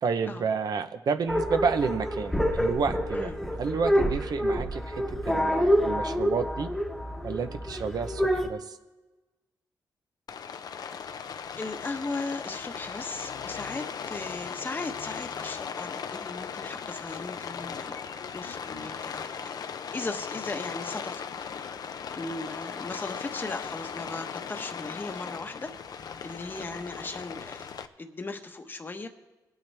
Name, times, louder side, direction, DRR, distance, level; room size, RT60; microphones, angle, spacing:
voice 1, 0.0-3.3 3.6-6.7 7.2-8.8, right 5 dB, 60° right, 8 dB, 0.8 m, -30 dB
sound 1, 1.3-8.5, equal, ahead, 1.2 m, -27 dB
Rain, 10.3-27.9, left 6 dB, 60° left, 0.7 m, -38 dB
voice 2, 11.6-19.5 19.9-21.2 22.1-27.7 28.0-29.1, left 3 dB, 25° left, 6 dB, 1.1 m, -37 dB
20.0 x 8.9 x 3.5 m, 1.1 s
cardioid pair, 105°, 7 cm